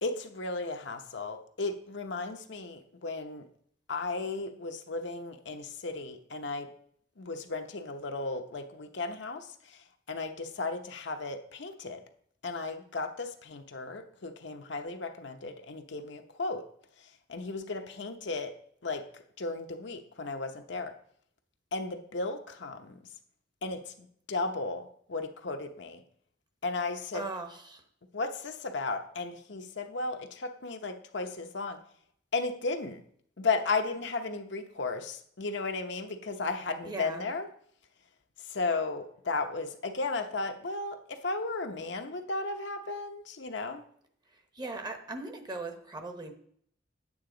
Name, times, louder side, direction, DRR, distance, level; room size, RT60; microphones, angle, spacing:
voice 1, 0.0-3.5 3.9-6.7 7.2-12.0 12.4-16.7 17.0-18.5 18.8-20.9 21.7-23.0 23.6-26.0 26.6-27.2 28.1-31.8 32.3-33.0 33.4-37.5 38.4-43.8, left 3 dB, 65° left, 5 dB, 0.8 m, -35 dB
voice 2, 27.1-27.8 36.8-37.3 44.5-46.3, right 2 dB, 25° right, 6 dB, 1.0 m, -39 dB
9.3 x 8.7 x 3.8 m, 0.64 s
head